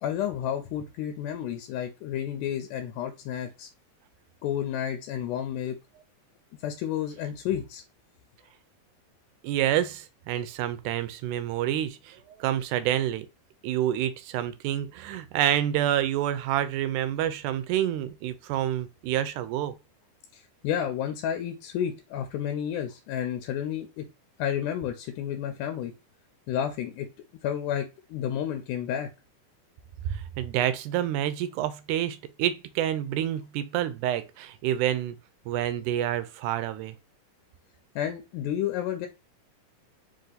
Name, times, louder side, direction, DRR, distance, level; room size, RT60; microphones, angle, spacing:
voice 1, 0.0-3.7 4.4-5.8 6.6-7.8 20.3-24.0 24.4-25.9 26.5-27.1 27.4-29.1 38.0-39.1, left 10 dB, 85° left, 2.1 m, -31 dB
voice 2, 9.4-13.3 13.6-19.8 30.1-35.2 35.5-36.9, right 11 dB, 80° right, 2.0 m, -28 dB
4.8 x 2.6 x 3.9 m
omnidirectional pair, 3.6 m